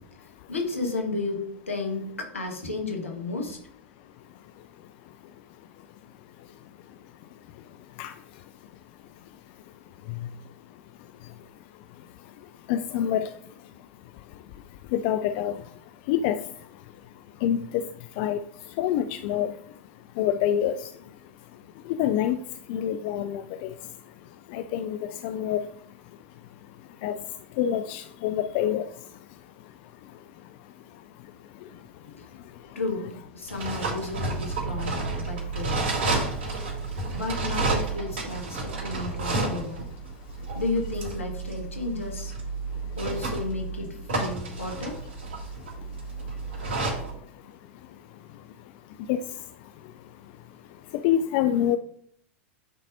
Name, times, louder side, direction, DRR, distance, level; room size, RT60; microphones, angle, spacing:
voice 1, 0.2-3.6 32.0-32.3 32.7-36.1 37.1-39.9 40.5-42.3 43.0-45.0, left 3 dB, 85° left, 2 dB, 1.5 m, -33 dB
voice 2, 12.7-13.3 14.9-15.5 16.1-16.4 17.4-17.8 18.2-18.4 18.8-19.5 20.2-20.8 22.0-22.4 22.7-23.7 24.5-25.0 25.2-25.6 27.0-27.1 27.6-28.9 49.1-49.2 51.0-51.8, left 10 dB, 50° left, 9 dB, 0.4 m, -25 dB
sound 1, 33.5-47.1, right 3 dB, 55° right, 2.7 m, -31 dB
8.9 x 4.0 x 2.7 m, 0.62 s
figure-of-eight pair, 90°, 7 cm